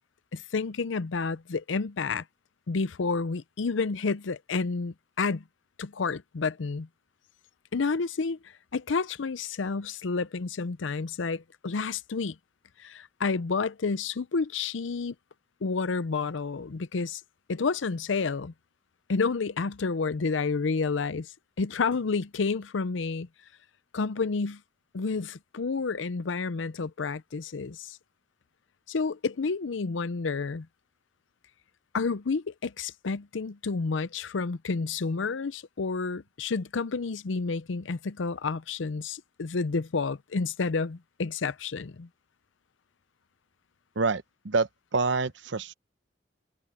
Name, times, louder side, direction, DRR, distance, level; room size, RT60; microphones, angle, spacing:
voice 1, 0.3-2.2 2.7-5.4 5.8-6.9 7.7-8.4 8.7-12.4 12.8-15.1 15.6-17.2 17.5-18.5 19.1-21.3 21.6-23.3 23.9-24.6 24.9-28.0 28.9-30.7 31.9-42.1, left 4 dB, 80° left, 0.6 m, -30 dB
voice 2, 44.0-45.7, right 4 dB, 70° right, 0.8 m, -27 dB
head